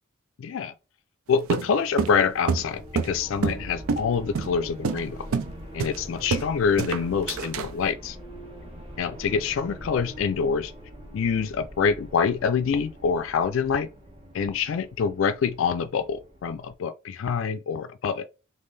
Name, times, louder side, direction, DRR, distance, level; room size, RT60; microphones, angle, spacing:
voice 1, 0.4-0.7 1.3-5.2 5.7-8.2 9.0-10.7 11.1-13.9 14.3-18.3, left 6 dB, 65° left, 0.4 m, -26 dB
sound 1, 1.5-3.6 3.9-4.1 4.3-4.5 4.8-5.0 5.3-5.5 5.8-6.5 6.8-7.7, right 5 dB, 90° right, 0.4 m, -27 dB
sound 2, 1.9-16.7, equal, 30° right, 1.3 m, -43 dB
3.7 x 3.3 x 3.9 m
head